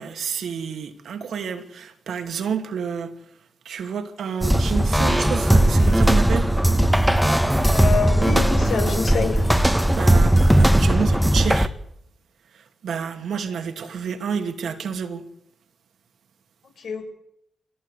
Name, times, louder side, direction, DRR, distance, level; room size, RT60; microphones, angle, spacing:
voice 1, 0.0-3.1 3.7-6.5 9.8-11.7 12.8-15.2, right 6 dB, 75° right, 2.4 m, -29 dB
sound 1, 4.4-11.7, right 1 dB, 5° right, 1.6 m, -18 dB
voice 2, 7.7-9.4 16.8-17.1, left 5 dB, 70° left, 6.3 m, -26 dB
22.5 x 17.5 x 8.3 m
supercardioid pair, 40°, 0 cm